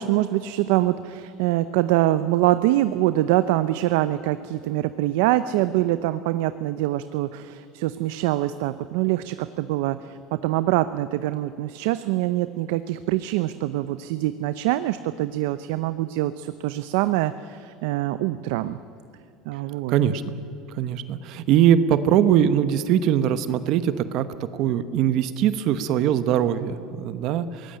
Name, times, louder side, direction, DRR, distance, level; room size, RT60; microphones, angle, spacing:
voice 1, 0.0-18.8 19.5-19.9, right 15 dB, 80° right, 12 dB, 0.7 m, -24 dB
voice 2, 19.9-20.3 20.7-27.8, right 10 dB, 55° right, 12 dB, 1.0 m, -22 dB
22.5 x 18.5 x 8.8 m, 2.6 s
cardioid pair, 140°, 0 cm